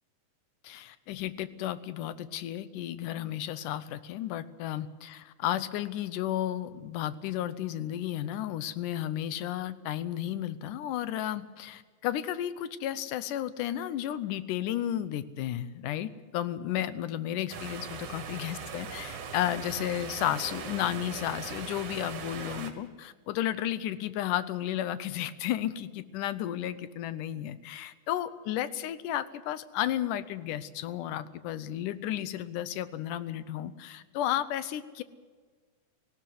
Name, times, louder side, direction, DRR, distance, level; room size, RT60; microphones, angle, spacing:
voice 1, 0.6-35.0, left 12 dB, 85° left, 14 dB, 2.4 m, -33 dB
sound 1, 17.5-22.7, right 6 dB, 75° right, 3.0 m, -40 dB
19.0 x 16.0 x 9.5 m, 1.5 s
omnidirectional pair, 3.6 m